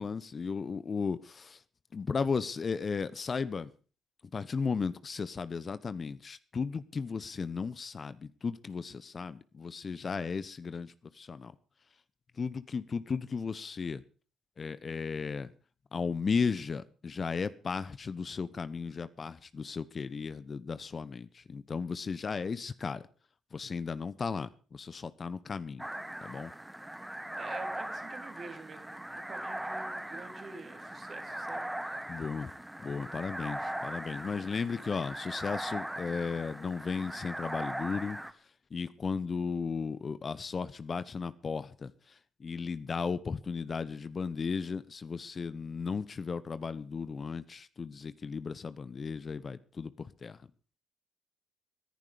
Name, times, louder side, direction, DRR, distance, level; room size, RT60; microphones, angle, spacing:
voice 1, 0.0-1.6 1.9-3.7 4.3-11.5 12.4-14.0 14.6-15.5 15.9-23.0 23.5-25.9 26.2-26.5 32.1-32.5 32.8-38.2 38.7-41.9 42.4-50.4, left 5 dB, 45° left, 1.0 m, -35 dB
sound 1, 25.8-38.3, right 1 dB, 10° right, 1.6 m, -40 dB
voice 2, 27.3-31.8, right 4 dB, 50° right, 3.5 m, -47 dB
19.0 x 11.0 x 5.1 m
hypercardioid pair, 50°, 0 cm